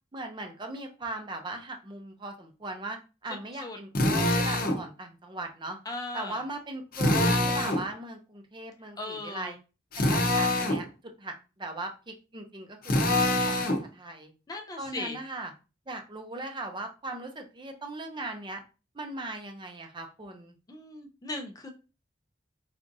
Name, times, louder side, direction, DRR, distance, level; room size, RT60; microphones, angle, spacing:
voice 1, 0.1-5.8 6.1-9.6 10.1-13.0 13.3-14.3 14.8-15.5 15.9-18.6 18.9-20.5, right 2 dB, 25° right, 4 dB, 0.6 m, -39 dB
Drill, 3.9-4.8 6.9-7.8 9.9-10.8 12.8-13.8, left 1 dB, 55° left, 0.7 m, -25 dB
voice 2, 5.9-6.4 9.0-9.6 14.5-15.2 20.7-21.7, left 2 dB, 20° left, 3 dB, 0.5 m, -37 dB
4.6 x 2.5 x 2.6 m, 0.32 s
head